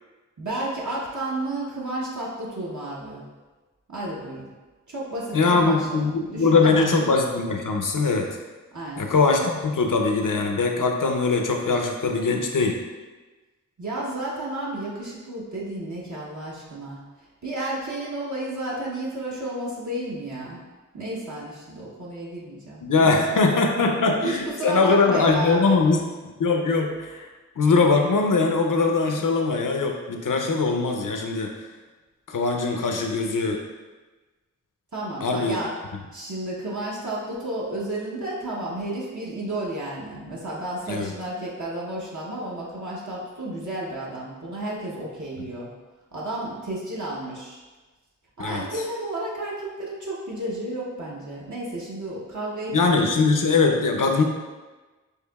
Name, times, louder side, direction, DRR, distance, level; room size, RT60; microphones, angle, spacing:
voice 1, 0.4-3.2 3.9-4.5 4.9-6.9 8.7-9.1 13.8-17.0 17.4-20.6 20.9-23.6 24.2-25.8 34.9-35.7 36.1-45.7 46.1-47.6 48.4-53.2, right 1 dB, 65° right, -6 dB, 0.9 m, -32 dB
voice 2, 5.3-8.3 9.0-12.8 22.8-26.0 26.4-27.3 27.6-31.5 32.3-33.6 35.2-35.6 40.9-41.1 48.4-48.6 52.7-54.2, left 4 dB, 80° left, 3 dB, 0.6 m, -21 dB
6.5 x 2.8 x 2.3 m, 1.2 s
wide cardioid pair, 60°, 31 cm